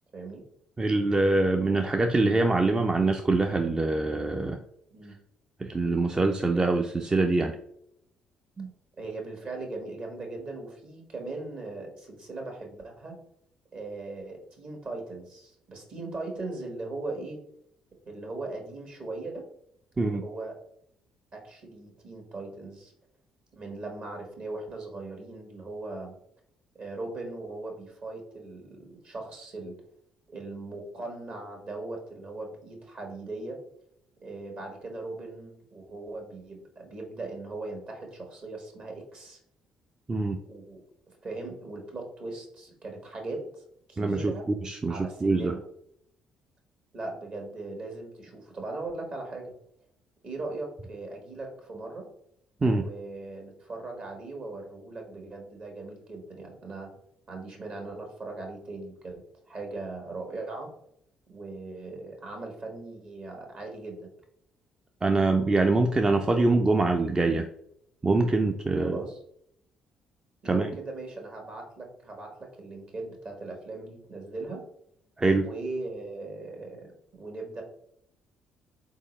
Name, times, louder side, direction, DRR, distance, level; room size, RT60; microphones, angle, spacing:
voice 1, 0.1-0.4 4.9-5.1 8.9-13.2 13.7-17.4 18.0-19.4 20.0-20.5 21.3-22.9 23.5-26.1 26.8-29.8 30.3-33.6 34.2-39.4 40.4-40.8 41.2-43.6 43.9-44.5 44.9-45.6 46.9-49.5 50.2-52.1 52.8-56.9 57.3-60.7 61.3-64.1 68.8-69.2 70.4-74.6 75.4-76.9 77.2-77.6, right 2 dB, 50° right, 2 dB, 1.5 m, -39 dB
voice 2, 0.8-4.6 5.6-7.6 8.6-8.7 20.0-20.2 40.1-40.4 44.0-44.3 44.6-45.5 52.6-52.8 65.0-67.5 68.0-69.0 70.4-70.7 75.2-75.5, right 3 dB, 25° right, 4 dB, 0.5 m, -24 dB
4.0 x 3.6 x 3.1 m, 0.73 s
hypercardioid pair, 45°, 3 cm